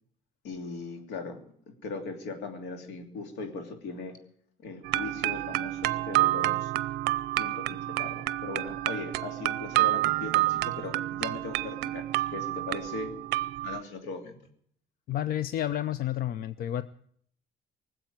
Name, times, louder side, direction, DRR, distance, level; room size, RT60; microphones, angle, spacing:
voice 1, 0.4-1.4 1.8-4.2 4.6-6.7 7.4-12.0 12.3-13.1 13.6-14.4, left 4 dB, 85° left, 5 dB, 2.9 m, -39 dB
sound 1, 4.8-13.8, right 17 dB, 80° right, 0.5 m, -29 dB
voice 2, 15.1-16.8, left 12 dB, 60° left, 14 dB, 0.6 m, -30 dB
19.5 x 7.8 x 9.5 m, 0.64 s
cardioid pair, 110°, 17 cm